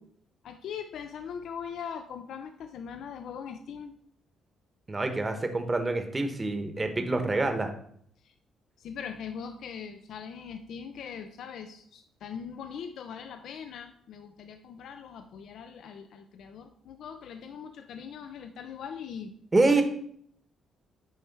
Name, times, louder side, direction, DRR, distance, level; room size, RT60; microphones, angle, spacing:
voice 1, 0.4-4.0 8.2-8.3 8.8-19.3 19.7-19.8, left 7 dB, 70° left, 7 dB, 0.5 m, -41 dB
voice 2, 4.9-7.7 19.5-19.8, right 2 dB, 25° right, 6 dB, 1.0 m, -26 dB
9.1 x 3.3 x 4.6 m, 0.66 s
cardioid pair, 90°, 0 cm